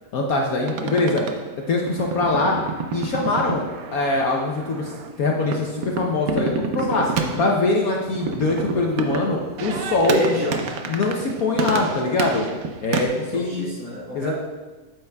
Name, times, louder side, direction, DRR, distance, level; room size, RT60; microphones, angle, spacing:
voice 1, 0.1-1.2 1.7-2.6 2.9-4.9 5.2-7.1 7.4-10.4 10.9-12.5 12.8-13.7 14.1-14.3, left 3 dB, 70° left, 0 dB, 0.8 m, -23 dB
sound 1, 0.7-13.1, right 5 dB, 85° right, 0.7 m, -30 dB
voice 2, 6.9-7.4 10.0-10.8 13.3-14.3, equal, 40° right, -4 dB, 1.7 m, -29 dB
8.8 x 7.6 x 2.3 m, 1.2 s
omnidirectional pair, 2.3 m